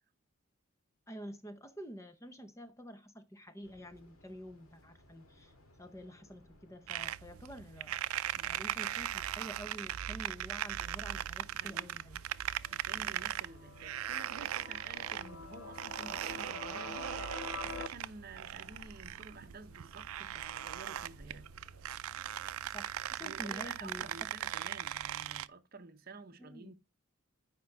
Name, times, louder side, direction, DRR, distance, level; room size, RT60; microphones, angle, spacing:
voice 1, 1.1-5.5 5.8-8.0 8.4-12.2 22.7-24.3 26.4-26.7, equal, 15° left, 0.7 m, -48 dB
sound 1, 3.6-22.4, equal, 85° left, 2.0 m, -61 dB
sound 2, 6.9-25.5, right 11 dB, 90° right, 0.4 m, -39 dB
voice 2, 11.5-12.0 12.7-21.5 23.2-26.7, right 3 dB, 45° right, 0.8 m, -51 dB
sound 3, 12.3-17.9, left 5 dB, 70° left, 0.6 m, -47 dB
9.3 x 5.3 x 3.5 m
head